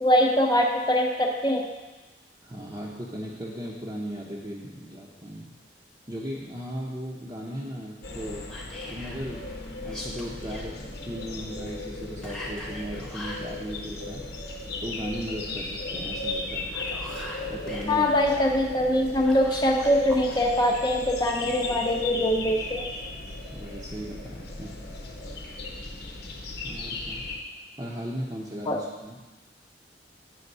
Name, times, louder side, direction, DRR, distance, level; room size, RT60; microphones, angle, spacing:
voice 1, 0.0-1.6 17.9-22.9 28.7-28.8, left 1 dB, 25° left, 1 dB, 0.6 m, -23 dB
voice 2, 2.4-5.5 6.1-8.6 8.9-9.6 9.8-14.3 14.8-16.7 17.5-18.1 23.5-24.8 26.6-27.3 27.8-29.2, equal, 20° right, -5 dB, 0.7 m, -37 dB
sound 1, 8.0-27.4, left 2 dB, 55° left, 0.9 m, -36 dB
Whispering, 8.5-9.2 9.8-10.7 12.2-13.5 16.5-18.4 19.2-20.4, left 1 dB, 5° left, 1.0 m, -41 dB
9.2 x 3.6 x 5.4 m, 1.2 s
head